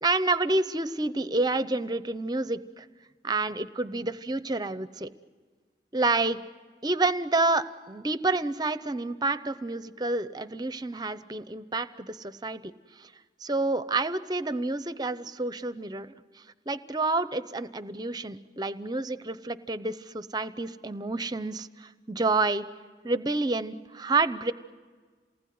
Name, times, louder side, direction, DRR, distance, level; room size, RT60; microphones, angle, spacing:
voice 1, 0.0-2.8 3.2-5.1 5.9-6.4 6.8-12.6 13.0-13.1 13.4-16.1 16.7-22.6 23.0-24.5, right 3 dB, 20° right, 13 dB, 0.7 m, -29 dB
28.0 x 19.5 x 9.4 m, 1.5 s
head